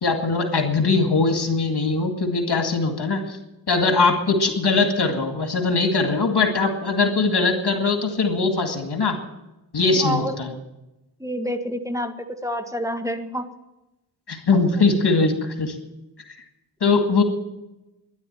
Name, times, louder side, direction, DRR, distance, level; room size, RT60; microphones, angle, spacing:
voice 1, 0.0-3.4 3.7-9.2 9.7-10.5 14.3-15.3 15.6-15.8 16.8-17.2, left 3 dB, 85° left, 4 dB, 2.2 m, -21 dB
voice 2, 9.9-10.6 11.2-12.1 12.4-13.5 14.7-14.8, equal, 10° right, 6 dB, 1.7 m, -28 dB
12.0 x 11.0 x 9.0 m, 0.97 s
wide cardioid pair, 50°, 39 cm